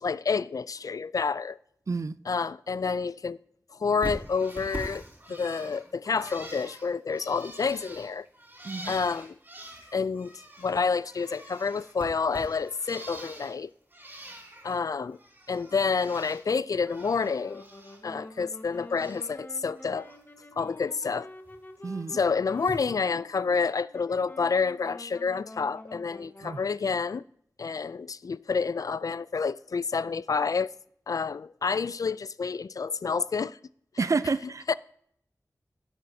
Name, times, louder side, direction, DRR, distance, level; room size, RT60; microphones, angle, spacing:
voice 1, 0.0-1.6 2.3-3.4 3.8-5.0 5.3-8.3 8.9-9.4 9.9-10.3 10.6-13.7 14.6-15.2 15.5-17.6 18.0-20.1 20.6-21.3 22.1-27.2 27.6-30.7 31.1-33.6 34.7-34.8, left 5 dB, 70° left, 0.3 m, -29 dB
Bird, 4.0-10.8 11.1-13.6 13.9-14.8 15.1-16.4 16.7-18.0 18.3-19.4 19.7-20.2 21.5-21.6 22.6-22.7, right 1 dB, 35° right, 3.6 m, -44 dB
Wind instrument woodwind instrument, 17.4-27.0, left 1 dB, 35° left, 1.4 m, -48 dB
voice 2, 21.8-22.2 26.4-26.6 34.0-34.7, right 4 dB, 55° right, 0.5 m, -29 dB
17.0 x 7.5 x 2.8 m
wide cardioid pair, 65°, 6 cm